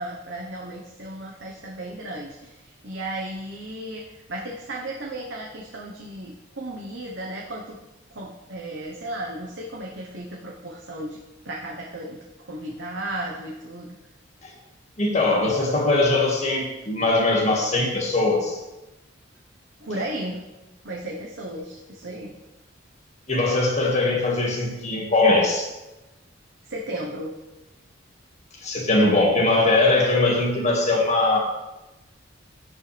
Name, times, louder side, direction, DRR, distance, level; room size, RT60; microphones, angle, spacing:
voice 1, 0.0-7.8 8.1-11.2 11.4-13.9 19.8-20.4 20.8-22.3 26.6-27.3, right 1 dB, 65° right, -2 dB, 1.1 m, -34 dB
voice 2, 15.0-18.6 23.3-25.7 28.6-31.4, left 2 dB, 35° left, -1 dB, 2.0 m, -21 dB
16.5 x 5.5 x 3.4 m, 1.0 s
head